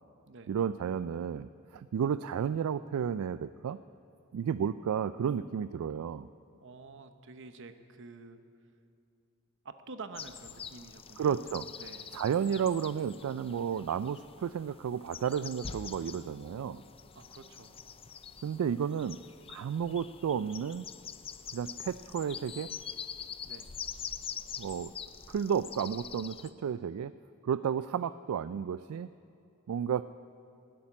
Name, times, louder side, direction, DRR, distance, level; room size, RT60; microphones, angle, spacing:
voice 1, 0.5-3.8 4.3-6.3 11.2-11.7 12.1-16.8 18.4-19.2 19.5-20.8 21.5-22.7 24.6-24.9 25.3-27.1 27.4-29.1 29.7-30.0, right 7 dB, 75° right, 14 dB, 0.3 m, -32 dB
voice 2, 6.6-8.4 9.6-11.4 11.8-12.1 17.1-17.7 23.4-23.7, right 3 dB, 60° right, 9 dB, 0.9 m, -48 dB
sound 1, 10.1-26.5, left 7 dB, 25° left, 0.4 m, -45 dB
17.0 x 8.6 x 9.8 m, 2.6 s
head